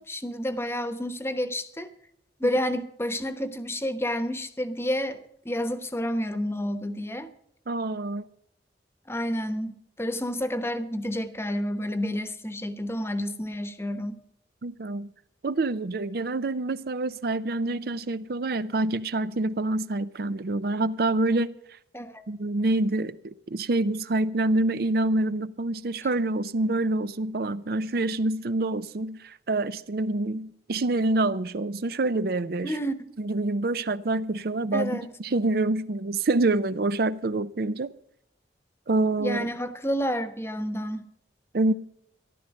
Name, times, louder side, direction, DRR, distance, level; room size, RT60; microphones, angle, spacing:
voice 1, 0.0-1.9 2.4-7.3 9.1-14.2 21.9-22.2 32.6-32.9 34.7-35.1 39.2-41.0, equal, 15° left, 1.0 m, -30 dB
voice 2, 7.7-8.3 14.6-15.1 15.4-21.5 22.3-32.7 33.2-37.9 38.9-39.5 41.5-41.7, right 2 dB, 55° right, 0.5 m, -26 dB
14.0 x 12.0 x 5.2 m
head